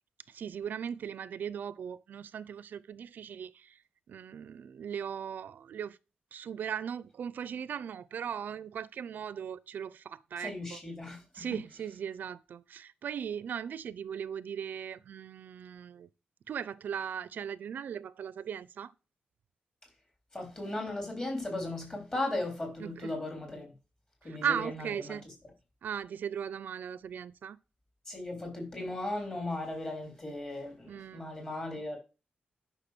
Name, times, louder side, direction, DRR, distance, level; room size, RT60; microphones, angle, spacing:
voice 1, 0.3-3.8 4.1-6.0 6.3-10.8 11.3-16.1 16.5-18.9 22.8-23.1 24.2-25.2 25.8-27.6 30.9-31.3, right 8 dB, 65° right, 0.5 m, -38 dB
voice 2, 10.4-11.6 20.3-23.7 24.2-25.2 28.1-32.0, left 2 dB, 20° left, 3.8 m, -37 dB
10.0 x 5.9 x 5.9 m
wide cardioid pair, 155°, 3 cm